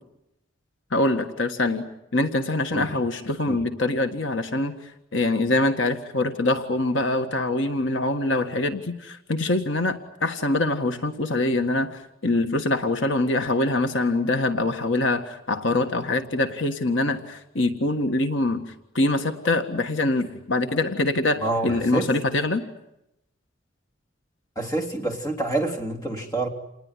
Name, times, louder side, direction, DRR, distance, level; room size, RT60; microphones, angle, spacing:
voice 1, 0.9-4.7 5.1-22.6, left 2 dB, 70° left, 6 dB, 1.7 m, -24 dB
voice 2, 21.4-22.1 24.5-26.5, right 2 dB, 20° left, 3 dB, 3.1 m, -27 dB
28.5 x 20.0 x 9.9 m, 0.87 s
head